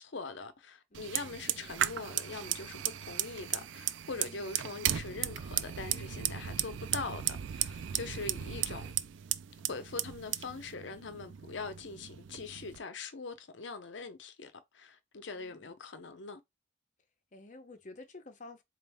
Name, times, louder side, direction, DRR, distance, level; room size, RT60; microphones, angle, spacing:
voice 1, 0.0-8.9 9.6-16.4, left 4 dB, 70° left, 0.7 m, -42 dB
voice 2, 0.9-1.7 4.2-4.5 7.9-8.6 15.3-15.7 17.3-18.6, left 2 dB, 40° left, 0.8 m, -52 dB
Fire, 0.9-12.8, right 11 dB, 75° right, 0.3 m, -36 dB
4.1 x 2.6 x 3.4 m
head